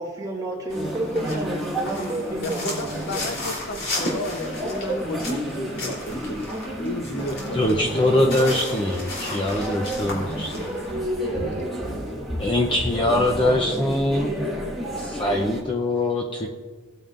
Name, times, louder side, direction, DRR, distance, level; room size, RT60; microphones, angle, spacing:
voice 1, 0.0-3.5 11.5-12.0 13.1-13.6, right 1 dB, 20° right, -3 dB, 2.3 m, -32 dB
sound 1, 0.7-10.8, left 2 dB, 75° left, 3.4 m, -35 dB
sound 2, 0.7-15.6, equal, ahead, 1.9 m, -31 dB
voice 2, 2.4-8.9 11.1-12.5, left 2 dB, 55° left, 5 dB, 0.8 m, -34 dB
voice 3, 7.5-10.5 12.4-14.3 15.0-16.5, left 1 dB, 25° left, 0 dB, 0.6 m, -23 dB
18.5 x 9.0 x 2.5 m, 1.5 s
head